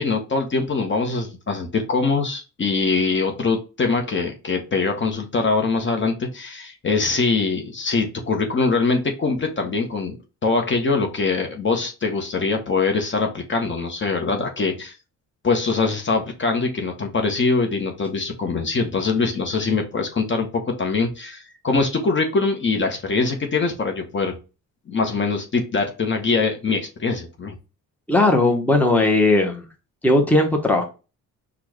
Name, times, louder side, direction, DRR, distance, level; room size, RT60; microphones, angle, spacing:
voice 1, 0.0-10.2 10.4-14.9 15.4-24.4 24.9-27.5, left 4 dB, 35° left, 3 dB, 1.0 m, -23 dB
voice 2, 28.1-29.6 30.0-30.8, left 2 dB, 5° left, 2 dB, 0.9 m, -17 dB
4.5 x 2.4 x 4.7 m, 0.31 s
cardioid pair, 110°, 33 cm